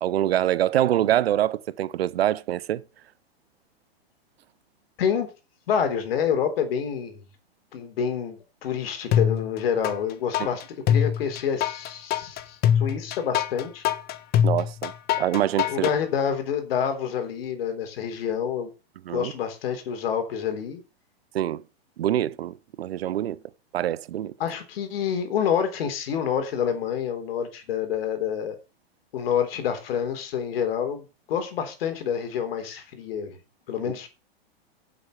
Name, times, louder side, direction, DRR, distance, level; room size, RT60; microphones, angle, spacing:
voice 1, 0.0-2.8 14.4-14.9 15.2-15.9 19.1-19.3 21.3-21.6 22.0-23.4 23.7-24.3, right 12 dB, 70° right, 0.9 m, -25 dB
voice 2, 5.0-5.3 5.7-7.2 7.7-13.8 15.7-18.7 19.1-20.8 24.4-28.6 29.1-33.4 33.7-34.1, left 8 dB, 65° left, 3.8 m, -28 dB
sound 1, 9.1-10.0 10.3-16.0, left 9 dB, 30° left, 1.2 m, -23 dB
10.0 x 7.7 x 6.7 m
hypercardioid pair, 120°, 31 cm